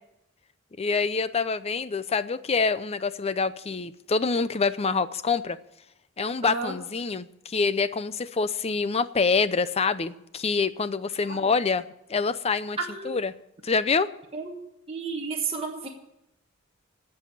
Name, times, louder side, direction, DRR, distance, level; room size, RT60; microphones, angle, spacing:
voice 1, 0.8-5.6 6.2-11.8 12.1-12.8 13.0-13.3 13.6-14.1, left 4 dB, 30° left, 0.5 m, -26 dB
voice 2, 6.4-6.7 11.3-11.4 12.8-13.2 14.3-14.6 14.9-15.9, right 4 dB, 30° right, 1.3 m, -32 dB
16.5 x 5.6 x 9.9 m
head